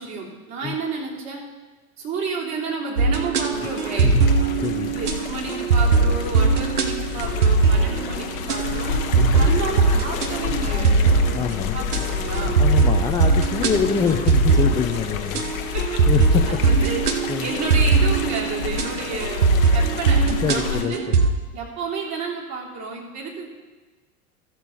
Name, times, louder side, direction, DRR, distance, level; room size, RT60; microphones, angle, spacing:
voice 1, 0.0-1.4 2.0-4.1 4.9-8.9 9.4-11.0 11.7-12.6 15.7-16.0 16.5-17.0 17.4-20.2 20.5-21.0 21.5-23.5, right 4 dB, 35° right, -3 dB, 3.2 m, -30 dB
sound 1, 3.0-21.3, right 4 dB, 85° right, 0.9 m, -20 dB
sound 2, 3.5-20.8, left 8 dB, 65° left, 1.1 m, -30 dB
voice 2, 4.6-4.9 9.1-9.5 11.3-11.8 12.6-15.4 16.1-16.4 17.3-17.5 20.4-21.2, left 7 dB, 10° left, 4 dB, 0.3 m, -25 dB
13.5 x 6.7 x 4.4 m, 1.3 s
figure-of-eight pair, 80°, 44 cm